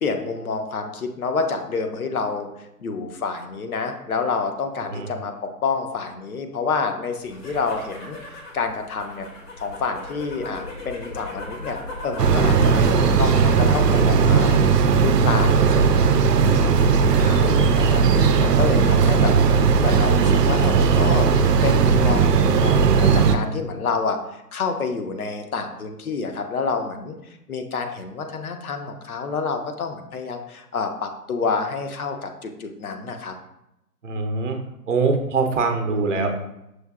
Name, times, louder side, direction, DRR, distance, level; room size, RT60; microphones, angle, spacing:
voice 1, 0.0-2.5 2.8-9.3 9.6-11.8 12.0-14.6 15.0-27.2 27.5-33.3, left 4 dB, 65° left, 6 dB, 0.7 m, -28 dB
sound 1, 7.1-13.9 14.2-14.8, left 2 dB, 80° left, 1.4 m, -36 dB
sound 2, 12.2-23.4, right 5 dB, 90° right, 0.6 m, -17 dB
voice 2, 18.8-19.7 34.0-34.6 34.9-36.3, right 4 dB, 50° right, 5 dB, 0.6 m, -24 dB
6.1 x 2.6 x 2.3 m, 0.87 s
hypercardioid pair, 165°, 47 cm